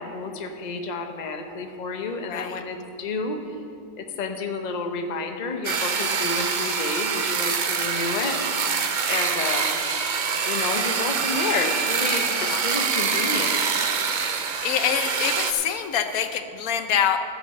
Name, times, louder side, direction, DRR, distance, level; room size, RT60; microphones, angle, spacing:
voice 1, 0.0-3.4 4.0-8.4 9.1-9.8 10.5-13.6, left 4 dB, 35° left, 5 dB, 0.8 m, -30 dB
voice 2, 2.3-2.6 12.2-12.6 14.6-17.2, left 8 dB, 80° left, 8 dB, 1.2 m, -25 dB
sound 1, 5.6-15.5, right 5 dB, 50° right, 0.6 m, -25 dB
15.0 x 5.3 x 6.9 m, 2.5 s
omnidirectional pair, 1.5 m